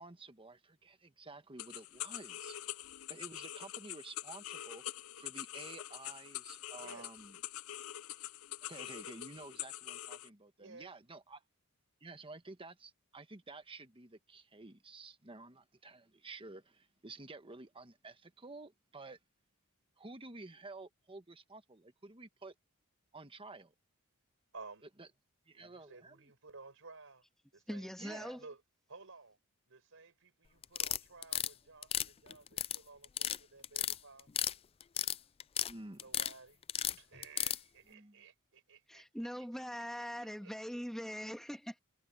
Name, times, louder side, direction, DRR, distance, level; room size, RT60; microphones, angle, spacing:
voice 1, 0.0-4.8 5.2-7.4 8.6-11.4 12.0-19.2 20.0-22.5 23.1-23.7 25.0-25.1 25.5-26.3 28.0-28.4 35.7-36.1 37.9-38.2, right 3 dB, 25° right, 1.3 m, -51 dB
sound 1, 1.6-10.3, left 13 dB, 65° left, 0.6 m, -45 dB
voice 2, 6.8-7.1 10.6-10.9 24.5-24.9 25.5-27.2 27.5-28.6 28.9-29.4 29.7-34.3 35.9-36.6 36.9-39.6 40.2-40.5, right 4 dB, 60° right, 5.4 m, -55 dB
voice 3, 27.7-28.4 38.9-41.8, equal, ahead, 2.1 m, -42 dB
sound 2, 30.6-31.5 31.8-32.8 33.0-33.4 33.6-34.5 34.8-35.7 36.0-36.3 36.7-37.6, left 11 dB, 25° left, 0.3 m, -34 dB
head